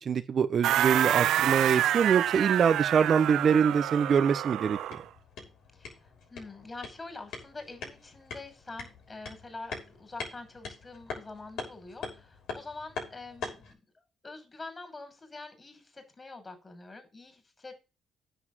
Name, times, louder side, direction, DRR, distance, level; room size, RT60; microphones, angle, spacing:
voice 1, 0.0-5.0, right 7 dB, 50° right, 1.0 m, -24 dB
sound 1, 0.6-5.0, right 12 dB, 80° right, 0.6 m, -28 dB
sound 2, 4.6-13.7, left 4 dB, 80° left, 6.6 m, -43 dB
voice 2, 5.7-13.8 14.2-17.8, left 3 dB, 25° left, 5.7 m, -45 dB
10.0 x 7.2 x 7.5 m
cardioid pair, 90°, 0 cm